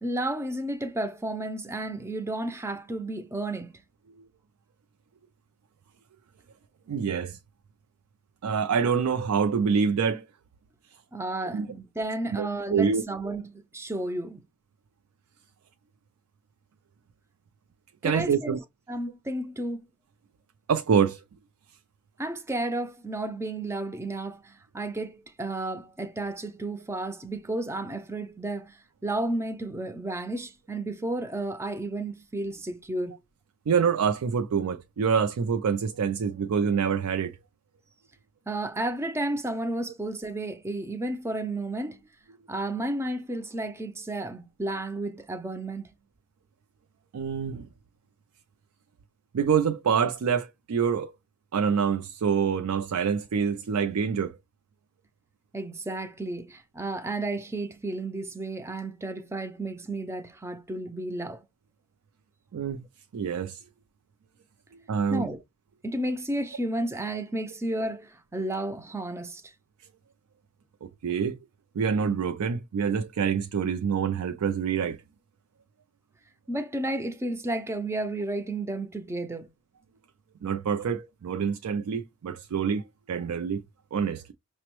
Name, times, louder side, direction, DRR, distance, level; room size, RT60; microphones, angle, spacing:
voice 1, 0.0-3.7 11.1-14.4 18.0-18.6 18.9-19.9 22.2-33.2 38.5-42.0 42.5-45.9 55.5-61.4 65.1-65.4 65.8-69.5 76.5-79.5, right 1 dB, 10° right, 0.4 m, -32 dB
voice 2, 6.9-7.4 8.4-10.3 11.5-11.7 12.4-13.0 18.0-18.6 20.7-21.2 33.7-37.4 47.1-47.7 49.3-51.1 51.5-54.4 62.5-62.8 63.1-63.6 64.9-65.3 70.8-71.4 71.8-75.0 80.4-83.6 83.9-84.3, right 6 dB, 80° right, 0.4 m, -26 dB
5.9 x 2.1 x 3.0 m
head